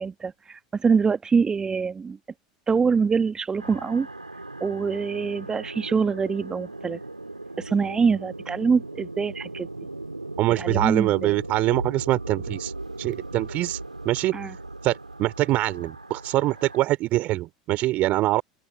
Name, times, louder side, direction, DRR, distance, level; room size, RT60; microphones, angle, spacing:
voice 1, 0.0-2.2 2.7-4.1 4.6-7.0 7.6-9.7 10.5-11.3 14.3-14.5, right 5 dB, 20° right, 1.3 m, -24 dB
sound 1, 3.6-16.8, right 2 dB, 90° right, 3.6 m, -37 dB
voice 2, 10.4-12.7 13.0-13.8 14.0-14.6 14.8-18.4, right 17 dB, 45° right, 3.3 m, -24 dB
open air
figure-of-eight pair, 80°, 4 cm